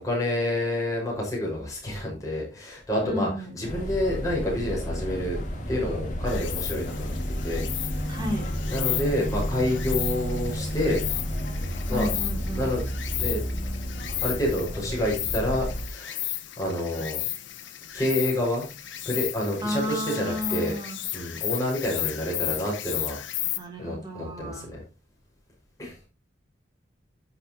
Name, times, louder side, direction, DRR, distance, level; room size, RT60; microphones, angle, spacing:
voice 1, 0.0-5.4 5.7-8.1 8.7-11.1 11.9-12.1 12.5-12.8 13.1-13.4 14.2-16.3 16.6-17.2 17.9-18.7 19.0-20.8 21.1-23.2 23.8-24.8 25.8-26.0, left 1 dB, 15° left, -3 dB, 6.0 m, -28 dB
voice 2, 3.0-3.5 8.1-8.5 11.9-12.7 19.6-21.0 23.6-24.7, left 1 dB, 20° right, 0 dB, 3.3 m, -32 dB
sound 1, 3.6-15.9, equal, 40° left, 2.4 m, -31 dB
Insect, 6.3-23.6, left 13 dB, 80° left, 1.1 m, -34 dB
15.5 x 6.6 x 3.1 m, 0.29 s
head